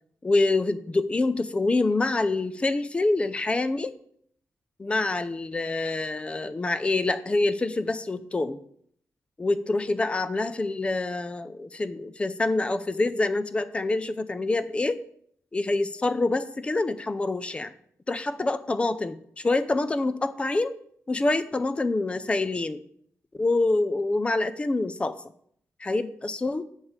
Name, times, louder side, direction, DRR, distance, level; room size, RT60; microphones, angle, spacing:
voice 1, 0.2-3.9 4.8-8.6 9.4-15.0 15.5-17.7 18.1-20.7 21.1-22.8 23.4-25.2 25.8-26.6, left 2 dB, 20° left, 12 dB, 0.5 m, -26 dB
8.0 x 5.4 x 7.3 m, 0.66 s
wide cardioid pair, 165°, 6 cm